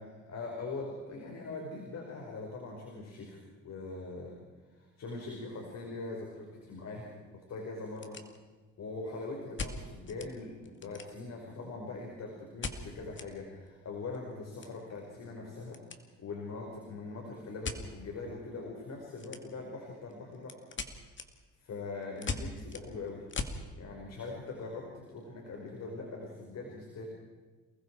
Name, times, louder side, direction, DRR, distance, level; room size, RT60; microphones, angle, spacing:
voice 1, 0.0-4.4 4.7-8.3 8.8-15.8 16.2-20.6 21.6-23.3 23.7-27.0, left 3 dB, 60° left, 0 dB, 5.3 m, -42 dB
sound 1, 7.2-7.3 7.7-8.7 9.6-10.3 10.6-11.4 12.6-13.3 13.6-13.7 14.0-16.0 16.3-16.6 17.6-17.8 19.2-19.7 20.1-23.6, left 4 dB, 40° left, 2.5 m, -40 dB
29.5 x 20.5 x 4.8 m, 1.3 s
cardioid pair, 90°, 30 cm